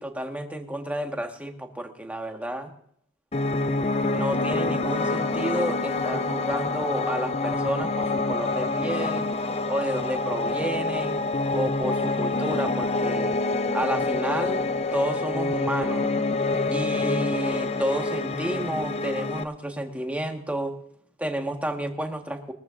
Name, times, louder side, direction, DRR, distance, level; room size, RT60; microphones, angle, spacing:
voice 1, 0.0-2.7 4.1-9.3 9.7-11.2 11.5-13.3 13.7-16.1 16.7-20.8 21.2-22.5, right 1 dB, 5° right, 3 dB, 1.5 m, -31 dB
Piano, 3.3-19.4, left 3 dB, 30° left, 0.6 m, -26 dB
22.5 x 14.0 x 2.6 m, 0.68 s
head